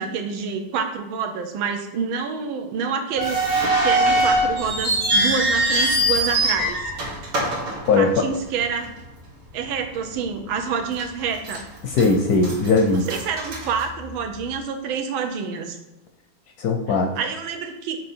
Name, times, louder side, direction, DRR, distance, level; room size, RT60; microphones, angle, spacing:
voice 1, 0.0-6.9 8.0-8.9 9.5-11.6 12.9-15.8 17.2-18.0, right 6 dB, 90° right, 5 dB, 1.6 m, -27 dB
sound 1, 3.2-8.5 8.8-8.9 9.6-9.8 10.3-10.4 11.0-11.6 11.9-14.4, right 1 dB, 75° right, 2.2 m, -22 dB
voice 2, 7.9-8.3 11.8-13.1 16.6-17.1, left 3 dB, 65° left, 3 dB, 0.9 m, -19 dB
6.5 x 4.4 x 4.3 m, 0.96 s
omnidirectional pair, 2.2 m